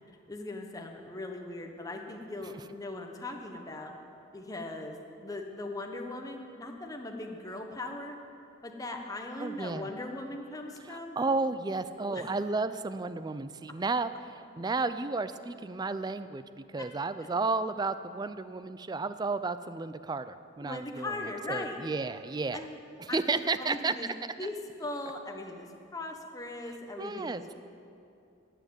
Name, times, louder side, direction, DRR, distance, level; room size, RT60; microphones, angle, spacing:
voice 1, 0.3-3.9 4.3-5.0 5.2-8.2 8.6-11.2 12.0-12.2 20.6-21.8 22.5-22.8 23.1-24.1 24.4-27.5, left 2 dB, 20° left, 3 dB, 1.0 m, -39 dB
voice 2, 9.4-9.9 10.8-16.4 16.7-21.2 21.5-22.6 23.0-23.9 27.0-27.4, right 3 dB, 20° right, 13 dB, 0.3 m, -32 dB
11.5 x 7.6 x 9.4 m, 2.6 s
head